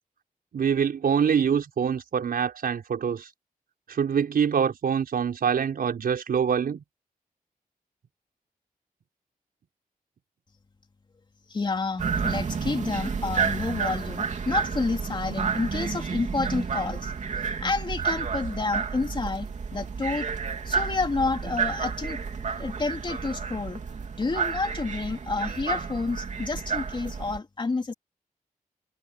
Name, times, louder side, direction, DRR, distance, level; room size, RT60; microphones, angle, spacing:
voice 1, 0.5-3.3 3.9-6.8 17.4-17.5, right 7 dB, 85° right, 5.6 m, -25 dB
voice 2, 11.5-17.1 17.6-19.5 19.7-20.3 20.7-22.2 22.6-23.8 24.2-27.9, left 3 dB, 30° left, 3.5 m, -29 dB
sound 1, 12.0-27.4, right 5 dB, 55° right, 2.8 m, -30 dB
wide cardioid pair, 165°, 15 cm